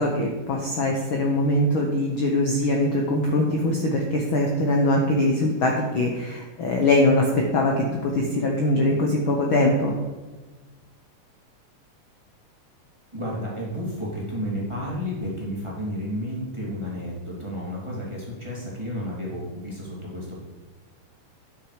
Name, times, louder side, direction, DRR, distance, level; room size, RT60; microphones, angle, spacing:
voice 1, 0.0-10.0, left 1 dB, 70° left, 1 dB, 1.2 m, -22 dB
voice 2, 13.1-20.4, equal, 10° right, -5 dB, 2.2 m, -31 dB
11.5 x 6.3 x 4.9 m, 1.2 s
omnidirectional pair, 3.8 m